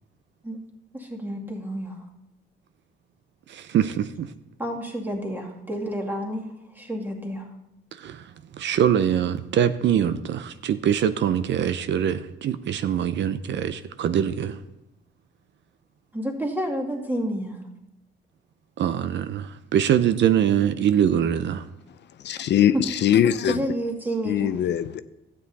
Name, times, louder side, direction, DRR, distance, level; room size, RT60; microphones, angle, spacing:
voice 1, 0.9-2.0 4.6-7.5 16.1-17.6 22.7-22.8 23.4-24.6, equal, 10° right, 2.2 m, -29 dB
voice 2, 3.5-4.3 8.0-14.6 18.8-21.7, right 9 dB, 65° right, 0.6 m, -23 dB
voice 3, 22.2-23.6 24.3-25.0, left 10 dB, 60° left, 0.5 m, -21 dB
12.5 x 8.7 x 4.1 m
cardioid pair, 110°, 20 cm